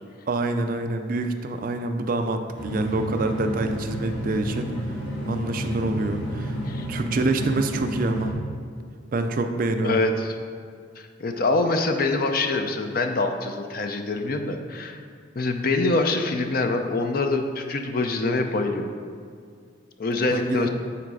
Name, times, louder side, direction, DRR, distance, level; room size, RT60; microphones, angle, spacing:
voice 1, 0.3-4.7 5.3-6.6 6.9-8.3 9.1-10.0 20.3-20.7, right 2 dB, 45° right, 7 dB, 0.4 m, -26 dB
sound 1, 2.5-8.3, equal, 70° left, 1.7 m, -30 dB
voice 2, 9.8-10.3 11.0-15.0 15.4-18.9 20.0-20.7, left 2 dB, 50° left, 5 dB, 0.6 m, -25 dB
8.6 x 4.0 x 4.8 m, 2.2 s
head